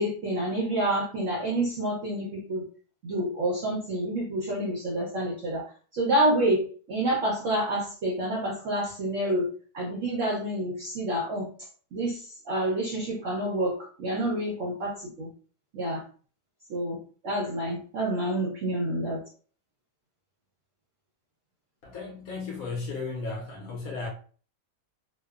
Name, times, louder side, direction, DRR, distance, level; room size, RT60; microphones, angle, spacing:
voice 1, 0.0-2.6 3.0-9.5 9.7-11.5 11.9-15.3 15.7-16.0 16.7-19.2, right 1 dB, 70° right, 0.7 m, -28 dB
voice 2, 21.8-24.1, left 3 dB, 65° left, 0.9 m, -35 dB
3.0 x 2.1 x 2.3 m
omnidirectional pair, 1.9 m